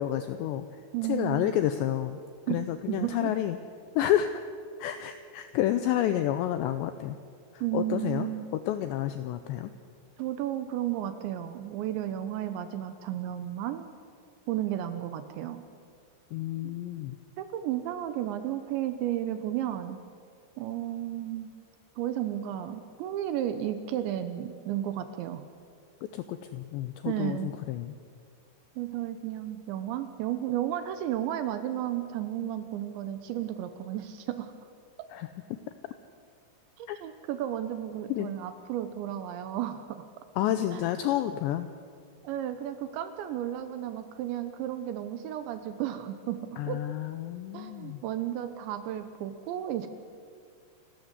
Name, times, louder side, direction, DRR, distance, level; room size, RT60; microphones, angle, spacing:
voice 1, 0.0-0.8 1.1-2.2 2.5-3.6 4.0-4.4 4.8-7.2 7.5-9.7 16.3-17.2 26.1-28.0 35.1-35.6 36.9-37.0 38.1-38.4 40.4-41.7 46.6-48.0, left 12 dB, 85° left, 10 dB, 2.5 m, -30 dB
voice 2, 0.9-1.5 2.5-3.3 7.6-8.5 10.2-13.9 14.5-15.6 16.6-16.7 17.4-20.0 20.6-21.5 22.0-25.5 27.1-27.5 28.8-34.5 36.8-40.1 40.7-40.8 42.2-46.8 47.5-49.9, right 12 dB, 75° right, 10 dB, 2.9 m, -33 dB
28.5 x 13.0 x 8.1 m, 2.1 s
omnidirectional pair, 5.9 m